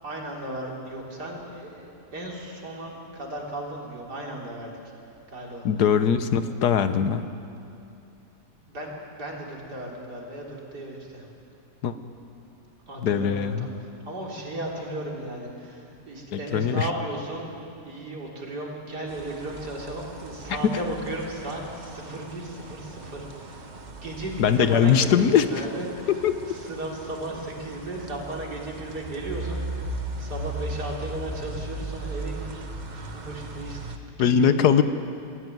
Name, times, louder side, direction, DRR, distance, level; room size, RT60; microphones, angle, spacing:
voice 1, 0.0-4.8 5.3-5.7 8.7-11.3 12.9-17.5 17.8-26.1 26.5-32.6 32.9-34.7, right 1 dB, 75° right, -2 dB, 4.2 m, -35 dB
voice 2, 5.6-7.3 11.8-11.9 13.0-13.7 16.3-16.9 20.6-20.8 24.4-25.6 26.1-26.4 34.2-34.8, left 7 dB, 75° left, 11 dB, 1.5 m, -21 dB
sound 1, 19.1-34.0, right 2 dB, 30° right, 1.0 m, -38 dB
23.0 x 16.0 x 9.4 m, 2.7 s
omnidirectional pair, 1.8 m